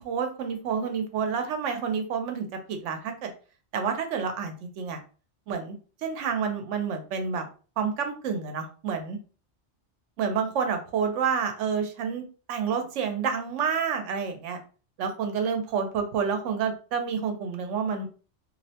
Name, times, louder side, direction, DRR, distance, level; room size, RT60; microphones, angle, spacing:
voice 1, 0.0-3.3 3.7-5.0 5.5-5.7 6.0-7.5 7.8-9.2 10.2-12.2 12.5-14.6 15.0-18.1, right 6 dB, 85° right, 6 dB, 0.9 m, -29 dB
2.7 x 2.1 x 2.7 m, 0.37 s
omnidirectional pair, 1.2 m